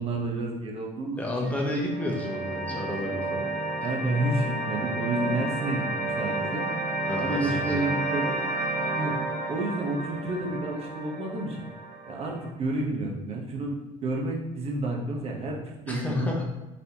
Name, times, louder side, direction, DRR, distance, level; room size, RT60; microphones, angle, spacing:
voice 1, 0.0-1.2 3.8-6.7 7.2-8.4 9.0-9.2 9.5-11.6 12.1-13.8 14.0-15.6 15.9-16.5, right 2 dB, 45° right, 0 dB, 1.0 m, -30 dB
voice 2, 1.2-3.5 7.1-7.9 15.9-16.5, left 1 dB, 10° left, -1 dB, 1.0 m, -31 dB
sound 1, 1.4-12.5, right 2 dB, 80° right, 1.1 m, -31 dB
4.2 x 3.2 x 2.8 m, 1.1 s
cardioid pair, 105°, 15 cm